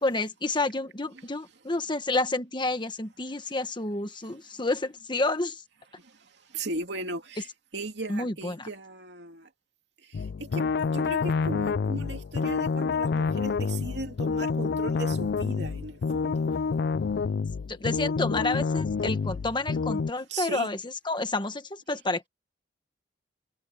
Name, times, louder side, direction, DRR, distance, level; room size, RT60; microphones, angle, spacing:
voice 1, 0.0-5.6 8.1-8.7 17.7-20.8 21.0-22.3, left 2 dB, 25° left, 1.5 m, -29 dB
voice 2, 6.5-7.5 7.7-9.5 10.4-16.5 20.3-20.7, right 2 dB, 65° right, 3.0 m, -37 dB
sound 1, 10.1-20.1, left 5 dB, 60° left, 0.4 m, -28 dB
head